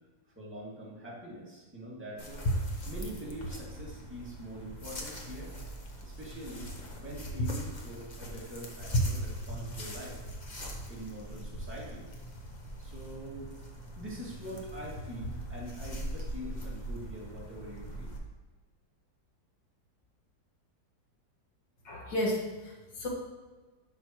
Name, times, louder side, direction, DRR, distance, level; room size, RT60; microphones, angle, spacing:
voice 1, 0.4-2.4 2.8-5.5 6.0-10.2 10.9-12.1 12.8-13.5 14.0-18.1, equal, 5° right, -6 dB, 1.9 m, -44 dB
sound 1, 2.2-18.2, equal, 30° left, 0.9 m, -38 dB
voice 2, 21.8-23.1, left 1 dB, 80° left, -2 dB, 2.2 m, -33 dB
11.5 x 6.3 x 3.0 m, 1.3 s
omnidirectional pair, 1.9 m